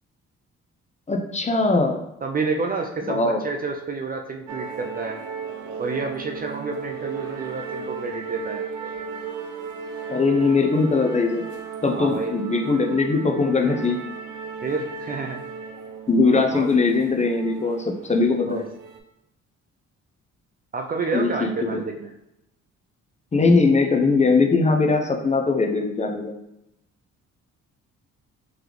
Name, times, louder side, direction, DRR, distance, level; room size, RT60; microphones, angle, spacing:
voice 1, 1.1-2.0 3.0-3.4 10.1-11.4 11.8-14.0 16.1-18.7 21.1-21.8 23.3-26.3, left 3 dB, 25° left, 3 dB, 0.6 m, -20 dB
voice 2, 2.2-5.2 5.8-8.6 11.8-12.4 14.6-15.4 16.5-16.7 18.5-18.6 20.7-22.1, right 4 dB, 30° right, 3 dB, 0.4 m, -29 dB
sound 1, 4.5-19.0, right 5 dB, 85° right, 0.6 m, -35 dB
3.9 x 3.2 x 3.1 m, 0.86 s
cardioid pair, 90°, 30 cm